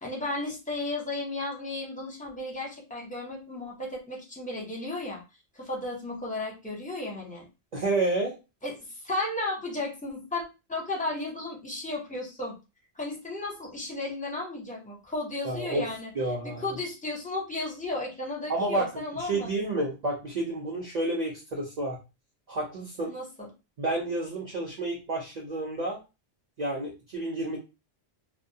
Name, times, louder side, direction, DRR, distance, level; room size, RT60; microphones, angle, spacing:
voice 1, 0.0-5.2 5.5-7.5 8.6-8.8 9.0-10.4 10.7-12.6 13.0-16.1 16.4-19.5 23.1-23.5, left 2 dB, 10° left, -2 dB, 0.6 m, -34 dB
voice 2, 7.7-8.4 15.4-15.8 16.1-16.6 18.5-22.0 22.5-23.1 23.8-26.0 26.6-27.6, right 2 dB, 45° right, -2 dB, 0.6 m, -30 dB
2.2 x 2.1 x 2.7 m, 0.28 s
omnidirectional pair, 1.1 m